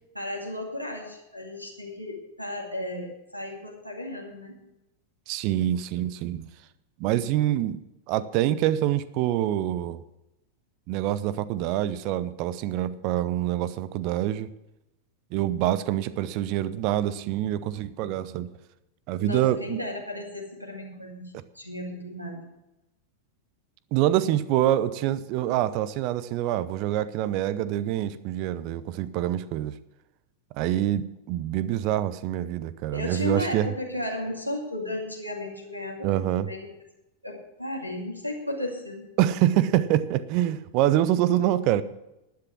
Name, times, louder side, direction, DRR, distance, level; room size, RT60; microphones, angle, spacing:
voice 1, 0.1-4.6 19.2-22.5 32.9-36.7 37.2-39.1, left 1 dB, 90° right, 1 dB, 2.3 m, -34 dB
voice 2, 5.3-6.5 7.0-7.8 8.1-10.0 10.9-14.5 15.3-18.5 19.1-19.8 23.9-29.7 30.5-33.7 36.0-36.5 39.2-41.8, right 12 dB, 45° right, 16 dB, 0.7 m, -25 dB
11.5 x 10.0 x 6.1 m, 0.93 s
figure-of-eight pair, 90°, 0 cm